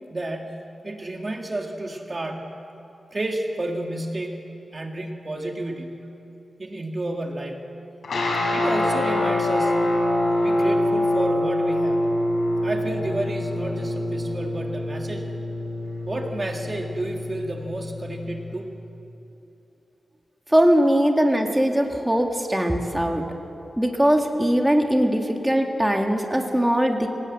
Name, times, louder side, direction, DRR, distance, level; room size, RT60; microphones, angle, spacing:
voice 1, 0.1-2.6 3.1-4.5 4.7-6.1 6.6-7.7 8.5-9.9 10.4-12.2 12.6-15.3 16.1-18.7, right 1 dB, 30° right, 2 dB, 1.8 m, -31 dB
sound 1, 8.0-18.5, left 1 dB, 75° left, 5.1 m, -25 dB
voice 2, 20.5-23.3 23.8-27.1, equal, 5° right, 3 dB, 2.0 m, -20 dB
26.5 x 17.5 x 8.6 m, 3.0 s
wide cardioid pair, 105°, 0 cm